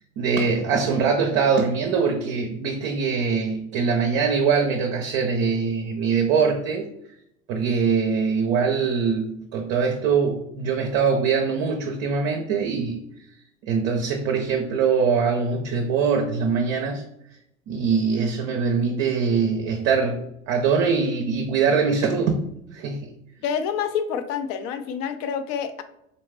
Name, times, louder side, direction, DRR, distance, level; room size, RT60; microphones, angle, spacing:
voice 1, 0.2-6.9 7.5-13.0 13.6-17.0 17.7-22.4 22.7-23.1, right 5 dB, 40° right, 3 dB, 0.6 m, -23 dB
voice 2, 23.4-25.8, left 7 dB, 40° left, 10 dB, 0.5 m, -27 dB
4.2 x 3.1 x 3.3 m, 0.77 s
figure-of-eight pair, 70°, 41 cm